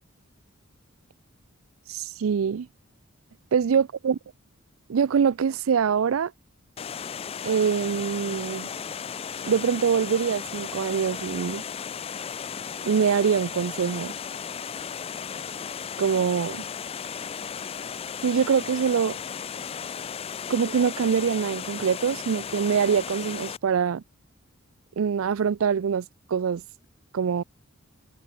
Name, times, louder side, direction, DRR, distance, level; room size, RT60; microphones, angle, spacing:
voice 1, 1.9-2.7 3.5-4.2 4.9-6.3 7.4-8.7 9.4-11.6 12.8-14.1 16.0-16.6 18.2-19.2 20.5-24.0 25.0-26.6 27.1-27.4, right 7 dB, 70° right, 0.4 m, -24 dB
Water, 6.8-23.6, left 7 dB, 25° left, 0.4 m, -35 dB
head